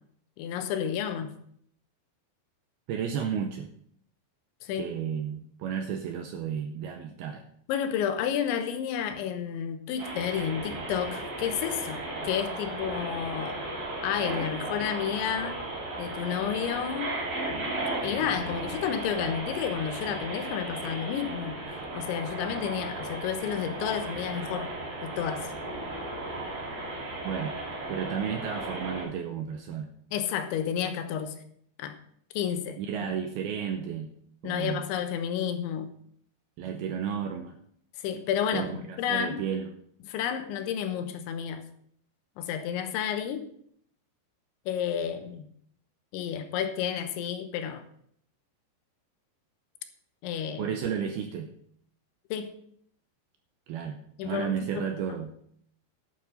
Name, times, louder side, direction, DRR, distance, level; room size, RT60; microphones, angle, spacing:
voice 1, 0.4-1.3 4.6-4.9 7.7-13.6 14.0-15.6 16.0-17.1 18.0-24.7 25.0-25.5 30.1-31.4 31.8-32.0 32.3-32.8 34.4-35.9 38.0-39.4 40.1-41.6 42.4-43.5 44.7-45.5 46.1-47.8 50.2-50.7 52.3-52.5 54.2-54.9, left 8 dB, 90° left, 3.3 m, -31 dB
voice 2, 2.9-3.7 4.7-7.5 27.2-27.6 27.9-29.9 32.8-34.1 34.4-34.8 36.6-37.6 38.5-39.7 50.6-51.5 53.7-55.3, right 8 dB, 85° right, 2.2 m, -33 dB
sound 1, 10.0-29.0, right 2 dB, 55° right, 6.6 m, -35 dB
12.0 x 7.3 x 5.4 m
omnidirectional pair, 5.2 m